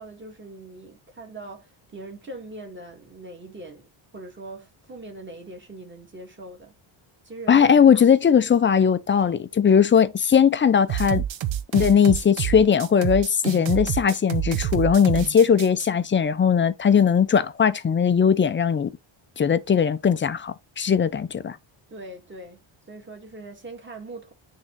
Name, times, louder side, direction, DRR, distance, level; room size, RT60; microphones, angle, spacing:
voice 1, 0.0-3.9 4.1-6.7 7.2-8.0 21.9-22.6 22.9-24.3, right 2 dB, 20° right, 1.8 m, -41 dB
voice 2, 7.5-11.2 11.7-18.9 19.4-21.6, left 7 dB, 25° left, 0.4 m, -19 dB
sound 1, 10.9-15.9, right 12 dB, 60° right, 0.8 m, -28 dB
9.8 x 3.7 x 3.1 m
wide cardioid pair, 170°, 50 cm